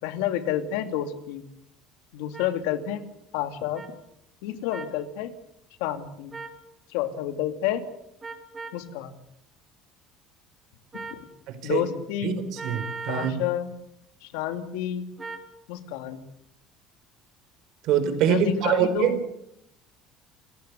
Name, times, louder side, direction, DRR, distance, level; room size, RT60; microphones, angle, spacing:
voice 1, 0.0-1.4 2.1-3.0 3.3-3.8 4.4-5.3 5.8-6.3 6.9-7.8 8.7-9.2 10.9-11.3 11.6-12.4 13.1-13.7 14.2-15.1 15.7-16.2 18.1-19.2, left 11 dB, 90° left, 9 dB, 2.6 m, -29 dB
sound 1, 2.3-2.5 3.7-3.9 4.7-5.0 6.3-6.6 8.2-8.8 10.9-11.2 12.6-13.4 15.2-15.5, right 4 dB, 15° right, 3.6 m, -38 dB
voice 2, 12.6-13.3 17.8-19.2, right 9 dB, 60° right, 11 dB, 4.4 m, -24 dB
28.5 x 15.5 x 8.2 m, 0.78 s
cardioid pair, 140°, 0 cm